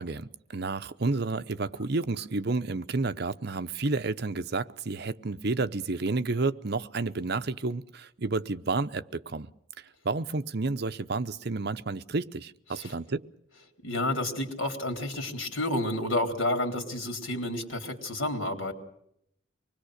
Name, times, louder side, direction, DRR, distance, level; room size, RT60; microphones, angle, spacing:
voice 1, 0.0-9.5 9.8-13.3, right 3 dB, 55° right, 11 dB, 0.8 m, -31 dB
voice 2, 13.8-18.7, left 1 dB, 90° left, 4 dB, 4.0 m, -30 dB
25.0 x 20.5 x 6.5 m, 0.71 s
head